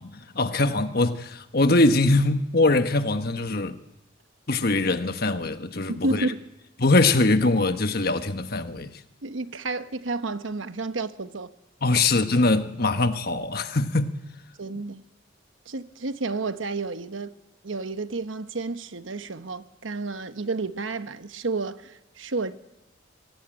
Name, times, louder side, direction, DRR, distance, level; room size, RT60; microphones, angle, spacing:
voice 1, 0.0-3.8 4.5-6.3 6.8-8.9 11.8-14.1, left 2 dB, 50° left, 1.3 m, -22 dB
voice 2, 5.9-6.5 9.2-11.5 14.6-15.0 15.7-17.3 17.6-22.5, right 3 dB, 85° right, 1.1 m, -31 dB
24.0 x 18.0 x 9.1 m
head